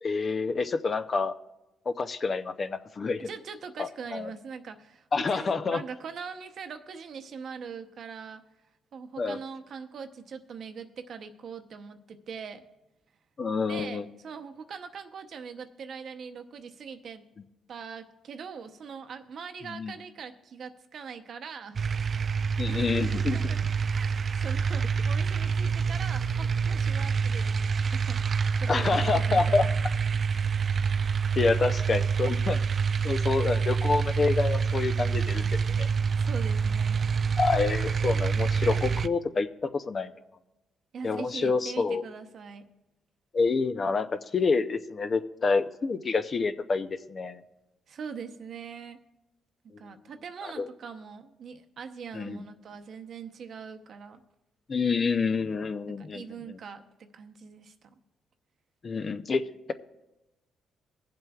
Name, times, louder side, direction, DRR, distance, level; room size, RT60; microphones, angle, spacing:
voice 1, 0.0-1.3 1.9-3.3 3.8-4.3 5.1-5.8 9.2-9.4 13.4-14.1 19.7-20.0 22.6-23.5 28.7-29.7 31.4-32.6 33.0-35.9 37.4-40.1 41.0-42.0 43.3-47.4 50.4-50.7 52.1-52.4 54.7-56.6 58.8-59.4, left 4 dB, 40° left, 10 dB, 0.5 m, -28 dB
voice 2, 3.2-8.4 8.9-12.6 13.7-17.2 17.7-21.8 22.7-29.7 36.2-37.1 40.9-42.7 47.9-49.0 49.6-54.2 56.0-58.0, right 6 dB, 60° right, 7 dB, 0.8 m, -42 dB
sound 1, 21.8-39.1, right 6 dB, 45° right, 0.3 m, -27 dB
22.5 x 7.6 x 2.4 m, 0.97 s
cardioid pair, 90°, 0 cm